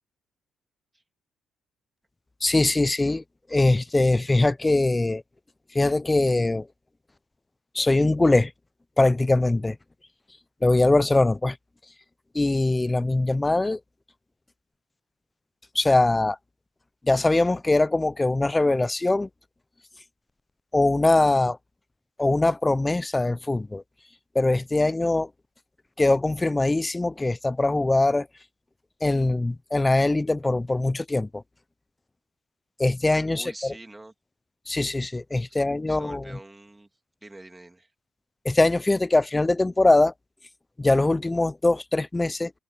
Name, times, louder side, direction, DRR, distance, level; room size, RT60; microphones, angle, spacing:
voice 1, 2.4-3.2 3.5-5.2 5.7-6.7 7.7-8.5 9.0-9.8 10.6-11.6 12.3-13.8 15.8-16.4 17.0-19.3 20.7-21.6 22.2-23.8 24.4-25.3 26.0-28.3 29.0-31.4 32.8-33.5 34.7-36.4 38.5-40.1 40.8-42.5, left 2 dB, 10° left, 0.3 m, -22 dB
voice 2, 33.3-34.1 35.5-35.6 35.9-36.9 37.2-37.9, right 2 dB, 10° right, 2.7 m, -45 dB
cardioid pair, 145°, 0 cm